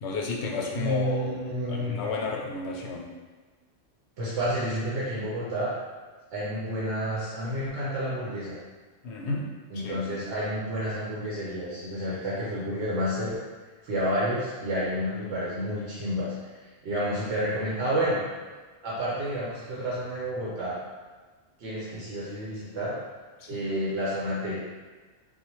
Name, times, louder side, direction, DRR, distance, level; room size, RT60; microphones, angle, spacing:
voice 1, 0.0-3.1 9.0-9.4 9.7-10.0 23.4-23.7, left 3 dB, 75° left, 0 dB, 0.8 m, -32 dB
voice 2, 0.7-2.0 4.2-5.7 6.3-8.6 9.7-13.4 13.8-16.3 16.8-18.2 18.8-20.8 21.6-23.0 23.5-24.6, equal, 75° right, -7 dB, 1.0 m, -30 dB
3.9 x 2.1 x 3.0 m, 1.3 s
omnidirectional pair, 1.2 m